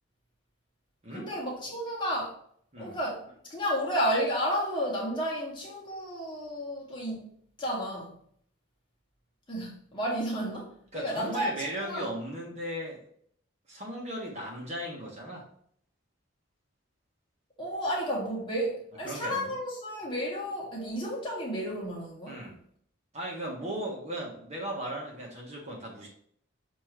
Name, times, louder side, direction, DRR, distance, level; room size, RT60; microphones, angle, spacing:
voice 1, 1.1-2.3 2.8-3.2 3.5-7.3 7.6-8.1 9.5-12.1 17.6-22.4, equal, 25° left, 1.8 m, -32 dB
voice 2, 10.9-13.0 13.7-15.5 19.0-19.5 22.3-22.6 23.1-26.1, right 1 dB, 30° right, 1.4 m, -37 dB
6.9 x 3.1 x 4.6 m
head